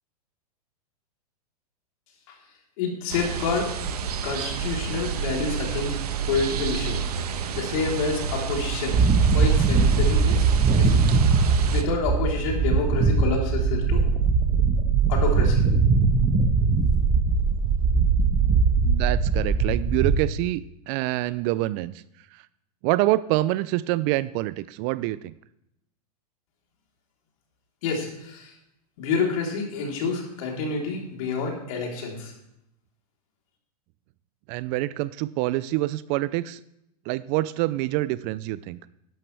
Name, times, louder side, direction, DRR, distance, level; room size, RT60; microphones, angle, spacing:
voice 1, 2.8-3.7 4.2-6.0 6.3-7.2 7.5-9.0 9.3-10.4 10.8-11.0 11.4-14.0 15.1-15.6 27.8-28.5 29.0-32.3, left 4 dB, 60° left, 0 dB, 3.7 m, -28 dB
sound 1, 3.1-11.8, right 6 dB, 75° right, 1.1 m, -29 dB
sound 2, 8.9-20.2, right 5 dB, 20° right, 1.2 m, -21 dB
voice 2, 18.8-21.9 22.3-22.4 22.8-25.3 34.5-36.6 37.1-38.8, right 17 dB, 40° right, 18 dB, 0.4 m, -26 dB
12.5 x 11.0 x 3.4 m, 0.79 s
hypercardioid pair, 115°, 20 cm